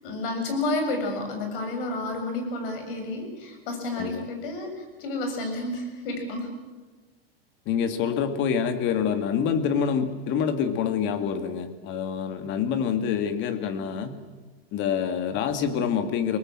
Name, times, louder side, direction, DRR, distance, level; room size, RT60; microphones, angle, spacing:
voice 1, 0.0-6.5, left 2 dB, 60° left, 4 dB, 7.0 m, -30 dB
voice 2, 7.7-14.2 14.7-16.4, left 7 dB, 40° left, 9 dB, 2.2 m, -26 dB
24.0 x 19.0 x 7.7 m, 1.3 s
hypercardioid pair, 135°, 31 cm